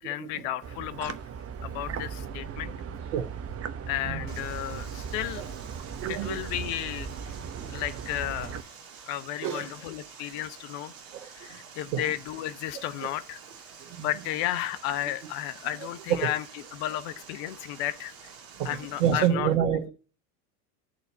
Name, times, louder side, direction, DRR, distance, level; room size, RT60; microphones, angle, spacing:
voice 1, 0.0-1.2 1.6-2.7 3.9-5.4 6.1-7.3 7.7-8.6 9.1-10.9 11.2-13.4 14.0-16.4 16.7-18.3 18.6-19.5, left 13 dB, 60° left, 1.0 m, -33 dB
sound 1, 0.6-8.6, right 7 dB, 30° right, 0.9 m, -37 dB
Water, 4.3-19.3, right 6 dB, 45° right, 1.9 m, -48 dB
voice 2, 6.0-6.4 9.4-9.7 11.9-12.1 14.0-14.1 16.2-16.3 18.6-19.9, right 9 dB, 70° right, 1.3 m, -27 dB
12.0 x 4.1 x 7.1 m
hypercardioid pair, 90°, 46 cm